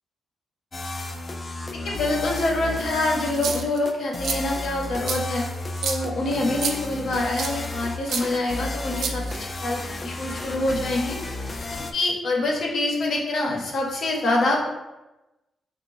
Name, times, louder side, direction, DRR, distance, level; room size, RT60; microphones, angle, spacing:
sound 1, 0.7-11.9, left 2 dB, 30° left, 0.3 m, -33 dB
voice 1, 1.8-5.4 5.8-11.2 11.9-14.7, left 2 dB, 70° left, -1 dB, 0.7 m, -25 dB
sound 2, 3.3-3.8 4.2-4.4 5.1-5.2 5.8-6.0 6.6-6.8 7.4-7.6 8.1-8.2 9.0-9.6, right 5 dB, 75° right, 0.3 m, -28 dB
3.0 x 2.1 x 3.8 m, 1.0 s
cardioid pair, 100°, 0 cm